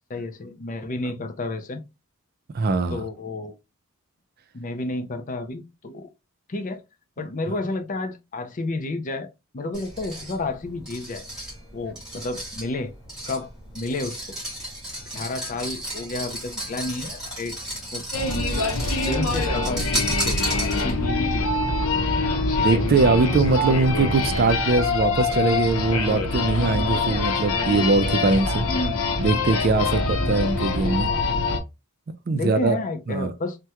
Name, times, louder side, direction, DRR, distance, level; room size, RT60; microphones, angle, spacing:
voice 1, 0.1-1.8 2.9-3.5 4.5-6.1 6.5-6.8 7.2-9.3 9.5-11.2 11.7-12.9 13.3-13.5 13.7-14.2 15.1-17.6 17.9-18.0 19.0-21.4 28.7-29.0 29.8-30.1 32.3-33.6, left 2 dB, 35° left, 0.4 m, -30 dB
voice 2, 2.5-3.0 22.6-28.6 29.2-31.1 32.3-32.8 33.1-33.3, right 3 dB, 45° right, 0.4 m, -21 dB
sound 1, 9.7-21.1, right 1 dB, 5° right, 1.9 m, -34 dB
sound 2, 18.1-31.6, left 3 dB, 70° left, 0.7 m, -24 dB
3.4 x 2.1 x 2.8 m
head